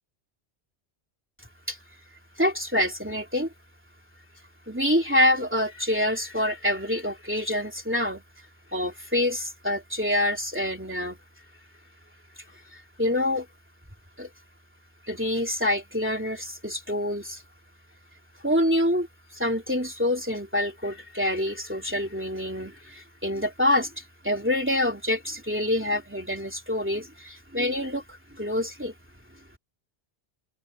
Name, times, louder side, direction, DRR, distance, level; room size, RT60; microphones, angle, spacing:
voice 1, 2.4-3.5 4.7-8.2 8.7-11.2 13.0-13.5 14.2-14.3 15.1-17.4 18.4-19.1 19.3-28.9, left 1 dB, 10° right, 3.1 m, -26 dB
open air
omnidirectional pair, 1.1 m